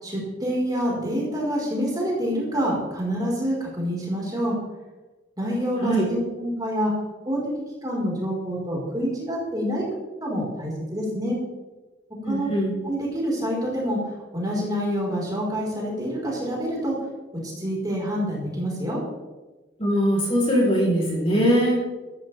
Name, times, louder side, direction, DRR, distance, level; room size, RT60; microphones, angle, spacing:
voice 1, 0.0-4.6 5.4-6.9 7.2-7.4 7.8-9.8 10.2-11.4 12.2-12.5 12.8-14.0 14.3-17.0 17.6-19.0, equal, 20° right, -4 dB, 4.9 m, -27 dB
voice 2, 12.2-12.7 19.8-21.8, equal, 30° left, -3 dB, 4.5 m, -21 dB
15.0 x 14.5 x 3.6 m, 1.2 s
head